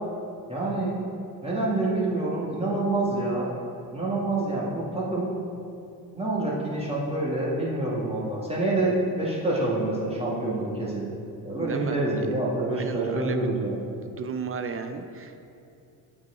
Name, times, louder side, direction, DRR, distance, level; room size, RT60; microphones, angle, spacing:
voice 1, 0.5-0.9 1.4-3.5 3.9-5.3 6.1-11.1 11.4-13.7, right 2 dB, 15° right, -6 dB, 1.6 m, -27 dB
voice 2, 11.6-12.0 12.7-13.4 14.1-15.4, right 6 dB, 30° right, 8 dB, 0.5 m, -34 dB
7.7 x 4.5 x 4.2 m, 2.5 s
supercardioid pair, 75°, 44 cm